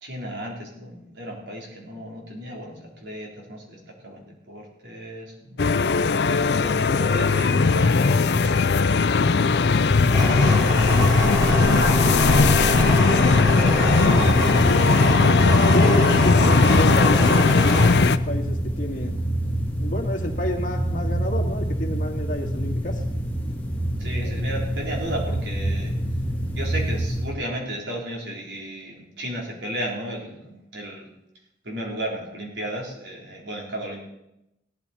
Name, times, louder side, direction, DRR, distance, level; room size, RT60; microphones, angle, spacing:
voice 1, 0.0-5.9 6.6-8.5 10.1-10.8 11.2-14.5 24.0-25.9 26.6-31.1 31.6-34.0, right 1 dB, 80° right, -2 dB, 3.6 m, -35 dB
sound 1, 5.6-18.2, left 4 dB, 70° left, 0.5 m, -18 dB
sound 2, 10.1-17.9, equal, 25° right, 2.7 m, -25 dB
sound 3, 13.6-27.3, right 1 dB, 10° left, 1.6 m, -27 dB
voice 2, 15.7-19.2 19.8-23.0 24.2-24.4, equal, 45° left, 1 dB, 1.9 m, -30 dB
17.0 x 12.0 x 4.3 m, 0.86 s
head